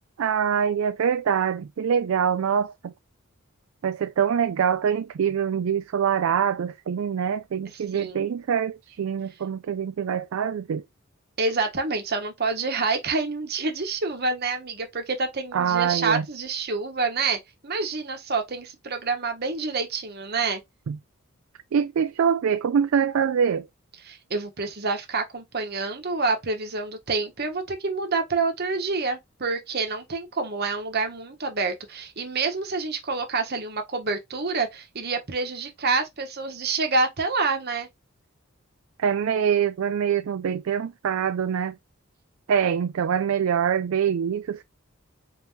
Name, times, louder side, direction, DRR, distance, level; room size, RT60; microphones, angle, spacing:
voice 1, 0.2-2.9 3.8-10.8 15.5-16.2 20.9-21.0 21.7-23.7 39.0-41.7 42.5-44.6, right 7 dB, 75° right, 0.4 m, -24 dB
voice 2, 7.9-8.3 11.4-20.6 24.0-37.9, right 4 dB, 50° right, 1.0 m, -27 dB
4.1 x 3.7 x 2.8 m
head